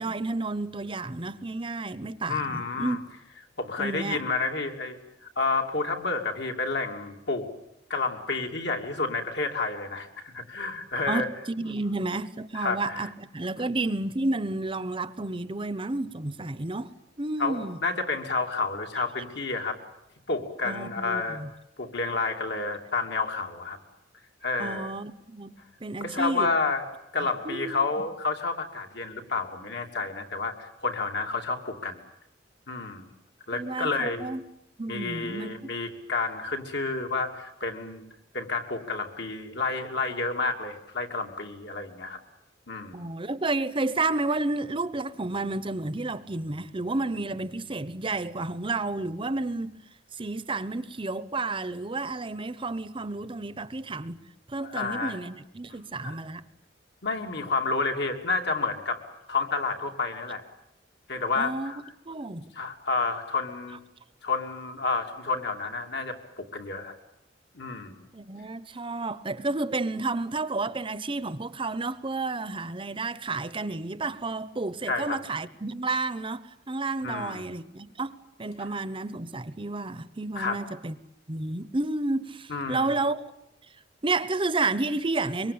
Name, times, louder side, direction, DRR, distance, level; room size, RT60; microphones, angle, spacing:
voice 1, 0.0-3.0 3.8-4.2 11.1-16.9 17.2-17.8 20.6-21.5 24.6-25.6 25.8-26.5 27.2-27.8 33.5-34.4 34.8-35.5 42.9-49.7 50.2-54.2 54.5-56.4 61.4-61.7 62.1-62.5 68.1-81.0 81.3-83.2 84.0-85.5, right 2 dB, 30° right, 0.9 m, -31 dB
voice 2, 2.3-3.0 3.6-7.5 7.9-11.3 12.5-13.1 17.4-19.8 20.3-21.4 21.8-23.8 24.4-24.9 26.0-26.8 27.1-32.0 32.7-33.1 33.5-34.3 34.9-38.0 38.3-42.2 42.7-43.1 54.6-55.2 56.0-56.2 57.0-59.0 59.3-60.4 61.1-61.8 62.5-63.8 64.2-66.9 67.5-68.0 74.9-75.2 77.0-77.5 80.4-80.6 82.5-82.9, left 3 dB, 65° left, 3.0 m, -30 dB
24.5 x 24.0 x 8.7 m
head